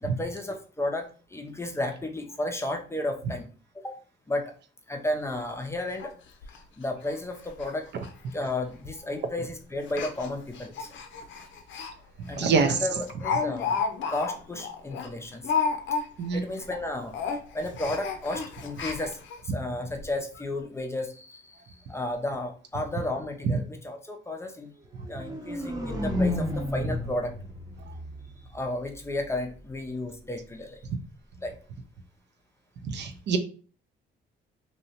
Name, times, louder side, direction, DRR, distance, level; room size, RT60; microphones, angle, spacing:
voice 1, 0.0-3.5 3.7-3.9 4.3-4.5 4.9-6.1 6.8-7.8 8.3-10.9 12.3-13.8 14.1-15.5 16.3-17.2 17.5-24.7 25.1-27.3 28.5-30.8 31.4-31.5, left 1 dB, 15° left, 4 dB, 0.5 m, -33 dB
Speech, 5.1-5.2 5.5-5.6 6.0-6.1 6.4-6.6 7.0-7.2 7.4-7.7 8.0-8.1 8.8-9.1 9.8-11.9 12.3-12.4 12.8-16.3 16.6-16.8 17.1-19.4 20.0-20.1 20.3-20.4, left 5 dB, 70° left, 0.5 m, -32 dB
voice 2, 12.3-12.8 16.2-16.4 32.8-33.4, right 5 dB, 60° right, 7 dB, 0.5 m, -25 dB
sound 1, 25.0-29.0, left 1 dB, 15° right, 0.7 m, -32 dB
2.7 x 2.0 x 2.8 m, 0.40 s
cardioid pair, 90°, 20 cm